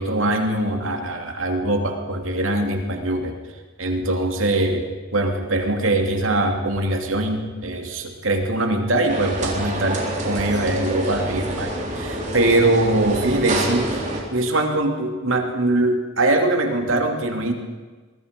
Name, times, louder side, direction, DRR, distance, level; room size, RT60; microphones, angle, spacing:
voice 1, 0.0-3.4 3.8-14.0 14.3-17.5, right 2 dB, 80° right, 3 dB, 2.8 m, -22 dB
sound 1, 9.1-14.2, right 1 dB, 35° right, 3.6 m, -27 dB
25.0 x 21.0 x 5.3 m, 1.4 s
head